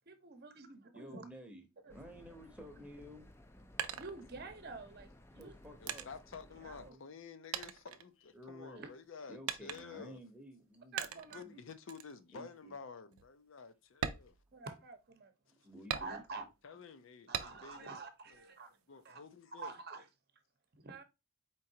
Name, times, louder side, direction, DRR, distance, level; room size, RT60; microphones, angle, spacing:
voice 1, 0.1-1.2 1.8-2.0 3.9-5.5 6.6-7.0 8.8-8.9 10.9-11.4 14.5-15.3 15.9-16.5 17.3-18.8 19.0-19.2 19.6-20.0 20.8-21.0, right 4 dB, 50° right, 0.8 m, -48 dB
voice 2, 0.9-1.7 1.9-3.2 5.3-6.1 6.7-7.0 8.3-8.8 9.3-11.0 11.3-11.6 12.3-12.7 15.6-16.2, equal, 5° right, 0.8 m, -52 dB
sound 1, 1.9-6.9, left 1 dB, 10° left, 0.4 m, -58 dB
sound 2, 3.2-4.8 5.4-7.2 7.5-8.7 9.5-10.1 11.0-11.5 11.9-12.1 12.6-12.7 13.1-13.3 13.9-15.1 15.9-16.5 17.3-17.9 18.3-19.1, right 9 dB, 85° right, 0.5 m, -42 dB
voice 3, 5.8-10.2 11.1-14.4 16.6-18.0 18.3-18.4 18.9-19.7, left 5 dB, 60° left, 0.5 m, -51 dB
4.5 x 3.6 x 2.7 m
head